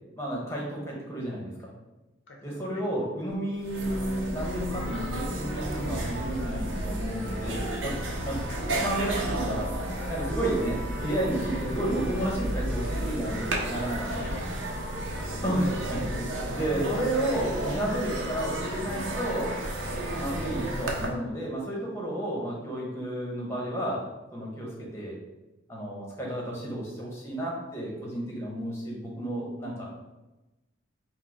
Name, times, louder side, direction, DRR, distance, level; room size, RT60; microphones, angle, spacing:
voice 1, 0.2-1.7 2.4-7.9 8.2-9.7 10.1-14.2 15.4-19.6 19.9-24.0 24.3-25.2 25.7-30.0, right 1 dB, 15° left, -3 dB, 0.9 m, -32 dB
voice 2, 2.3-2.8 7.9-8.7 14.1-15.6 19.7-20.0, left 2 dB, 75° left, 1 dB, 0.8 m, -48 dB
sound 1, 3.3-3.4 3.6-21.1, right 1 dB, 75° right, 0.8 m, -32 dB
4.3 x 2.2 x 4.4 m, 1.0 s
head